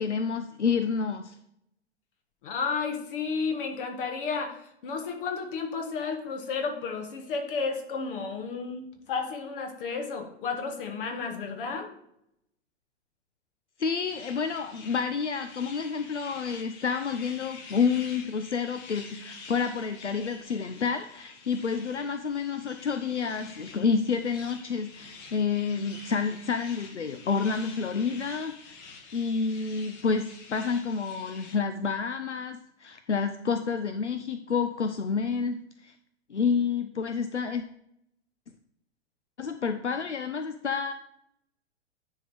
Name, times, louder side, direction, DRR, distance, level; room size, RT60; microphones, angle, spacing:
voice 1, 0.0-1.4 13.8-28.8 29.1-35.9 36.3-37.6 39.4-40.9, left 5 dB, 85° left, 8 dB, 0.6 m, -29 dB
voice 2, 2.4-11.9, left 5 dB, 50° left, 4 dB, 1.6 m, -32 dB
sound 1, 14.0-31.6, left 4 dB, 35° left, 1.3 m, -48 dB
9.7 x 3.7 x 4.7 m, 0.75 s
figure-of-eight pair, 100°, 34 cm